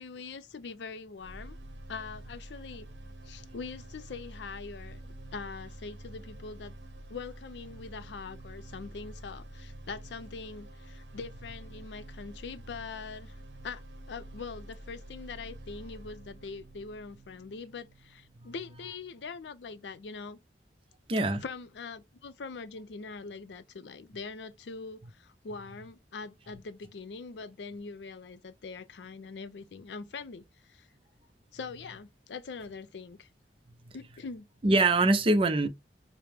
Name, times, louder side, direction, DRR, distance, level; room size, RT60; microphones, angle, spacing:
voice 1, 0.0-1.6 1.9-2.9 3.2-6.8 7.1-13.4 13.6-13.8 14.1-20.4 21.4-30.9 31.5-33.3 33.9-34.5, left 4 dB, 80° left, 0.5 m, -43 dB
sound 1, 1.2-19.2, right 1 dB, 75° right, 0.8 m, -48 dB
voice 2, 21.1-21.4 34.6-35.7, right 2 dB, 30° right, 0.5 m, -24 dB
4.8 x 2.0 x 3.3 m
head